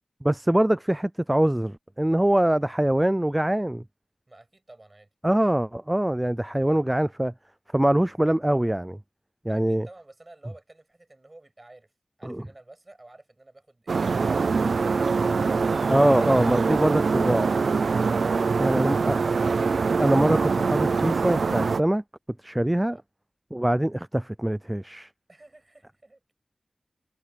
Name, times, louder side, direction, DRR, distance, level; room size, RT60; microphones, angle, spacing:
voice 1, 0.2-3.8 5.2-7.3 7.7-9.0 9.4-9.9 12.2-12.4 15.9-17.6 18.6-19.2 20.0-22.0 22.4-23.0 23.5-25.1, right 1 dB, 15° right, 0.4 m, -23 dB
voice 2, 4.3-5.1 6.5-6.8 9.4-11.9 12.2-14.0 22.8-23.0 25.3-26.3, right 2 dB, 30° right, 6.4 m, -51 dB
sound 1, 13.9-21.8, right 4 dB, 85° right, 0.4 m, -24 dB
wide cardioid pair, 75°, 0 cm